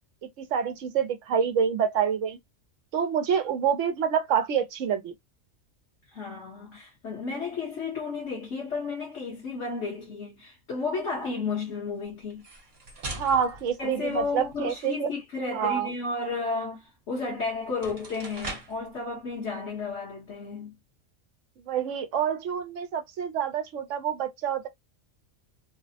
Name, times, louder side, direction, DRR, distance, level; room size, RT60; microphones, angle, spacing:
voice 1, 0.4-2.4 2.9-5.1 13.2-15.1 15.5-15.9 21.7-24.7, right 7 dB, 80° right, 1.0 m, -27 dB
voice 2, 6.1-12.4 13.8-20.8, left 4 dB, 65° left, 1.4 m, -33 dB
sound 1, 12.3-14.7 17.1-17.2 17.7-18.9, right 2 dB, 55° right, 1.2 m, -41 dB
3.3 x 2.0 x 2.7 m
omnidirectional pair, 1.3 m